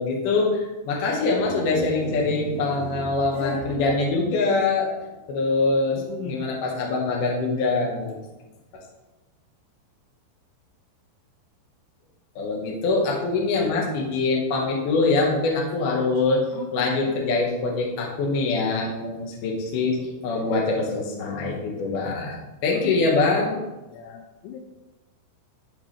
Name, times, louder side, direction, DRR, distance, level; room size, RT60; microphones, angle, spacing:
voice 1, 0.0-4.9 5.3-8.2 12.4-16.4 16.7-20.0 20.2-23.6, left 3 dB, 60° left, -2 dB, 2.3 m, -24 dB
sound 1, 1.0-5.2, right 4 dB, 40° right, 2.0 m, -37 dB
voice 2, 3.3-4.0 6.0-6.4 16.5-17.0 19.9-20.5 22.7-22.9 23.8-24.6, left 5 dB, 85° left, 3 dB, 2.7 m, -37 dB
12.0 x 4.7 x 3.4 m, 1.1 s
omnidirectional pair, 5.5 m